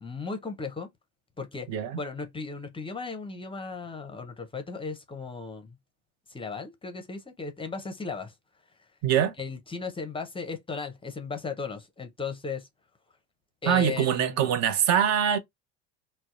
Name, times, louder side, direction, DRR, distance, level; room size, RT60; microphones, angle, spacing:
voice 1, 0.0-0.9 1.4-5.8 6.3-8.3 9.4-12.7 13.6-14.4, left 4 dB, 15° left, 0.5 m, -36 dB
voice 2, 1.7-2.0 9.0-9.3 13.7-15.4, right 9 dB, 50° right, 0.6 m, -23 dB
2.6 x 2.0 x 2.3 m
hypercardioid pair, 85°, 34 cm